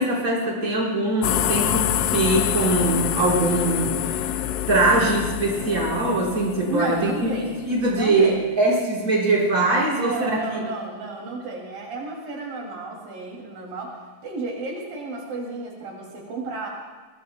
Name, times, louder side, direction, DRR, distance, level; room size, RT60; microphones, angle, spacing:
voice 1, 0.0-10.6, right 2 dB, 25° right, -5 dB, 5.1 m, -22 dB
sound 1, 1.2-8.0, left 11 dB, 75° left, 2.2 m, -26 dB
voice 2, 6.7-7.6 7.9-8.5 9.9-14.0 14.2-16.7, right 2 dB, 75° right, -2 dB, 4.3 m, -32 dB
25.5 x 20.5 x 2.2 m, 1.3 s
omnidirectional pair, 4.0 m